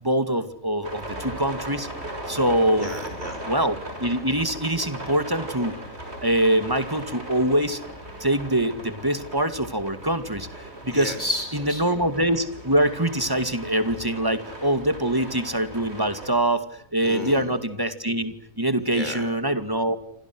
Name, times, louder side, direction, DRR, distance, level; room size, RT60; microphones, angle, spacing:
voice 1, 0.0-1.9 2.3-2.9 3.5-5.7 6.2-7.8 8.2-10.5 10.8-11.1 11.8-16.7 16.9-20.0, right 1 dB, 15° right, 11 dB, 2.4 m, -24 dB
sound 1, 0.8-16.3, right 1 dB, 50° right, 7.3 m, -38 dB
voice 2, 2.7-3.4 10.9-11.8 17.0-17.5 18.9-19.3, left 1 dB, 35° left, 7 dB, 5.2 m, -32 dB
28.5 x 26.0 x 6.3 m, 0.70 s
omnidirectional pair, 1.4 m